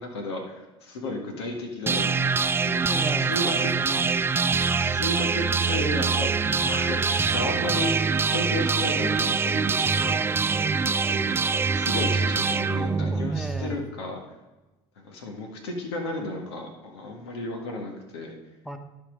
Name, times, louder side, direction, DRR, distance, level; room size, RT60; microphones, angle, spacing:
voice 1, 0.0-2.3 2.6-2.8 3.1-3.7 4.8-6.3 6.6-7.9 8.3-10.2 10.8-11.4 11.7-14.2 14.9-18.3, left 2 dB, 85° left, 2 dB, 1.7 m, -33 dB
sound 1, 1.9-13.8, right 5 dB, 15° right, 0.3 m, -24 dB
voice 2, 2.8-4.1 6.5-6.8 13.1-13.8 18.6-18.8, right 1 dB, ahead, 4 dB, 1.1 m, -35 dB
12.0 x 4.6 x 5.1 m, 1.1 s
hypercardioid pair, 80°, 14 cm